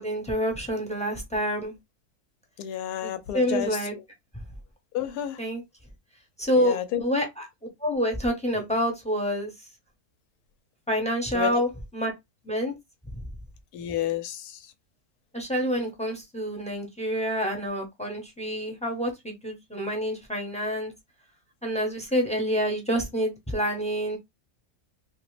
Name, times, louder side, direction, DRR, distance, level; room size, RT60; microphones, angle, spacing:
voice 1, 0.0-1.7 3.0-3.9 5.4-5.6 6.4-7.5 7.8-9.5 10.9-12.1 12.4-12.7 15.3-20.9 21.6-24.2, equal, 5° left, 0.6 m, -27 dB
voice 2, 2.6-4.0 4.9-5.4 6.6-7.0 11.3-11.6 13.7-14.5, left 10 dB, 90° left, 1.2 m, -30 dB
2.9 x 2.7 x 3.2 m
omnidirectional pair, 1.6 m